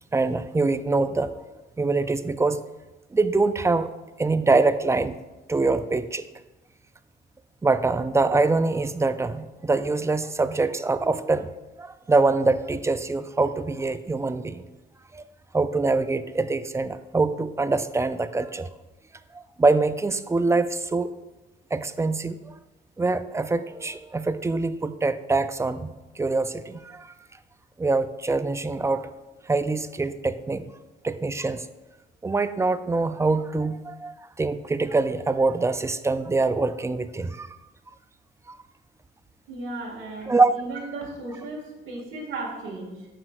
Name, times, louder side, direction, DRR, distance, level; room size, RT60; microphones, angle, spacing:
voice 1, 0.1-1.4 1.8-2.6 3.1-3.9 4.2-5.2 5.5-6.2 7.6-11.5 11.8-14.7 15.1-15.2 15.5-18.7 19.3-21.1 21.7-22.5 23.0-27.1 27.8-29.1 29.5-30.6 31.0-31.7 32.2-37.6 38.5-38.6 40.3-40.5, right 3 dB, 15° right, 12 dB, 0.3 m, -24 dB
voice 2, 39.5-43.1, right 2 dB, 75° right, -1 dB, 1.9 m, -35 dB
8.9 x 5.9 x 2.4 m, 1.1 s
cardioid pair, 90°, 20 cm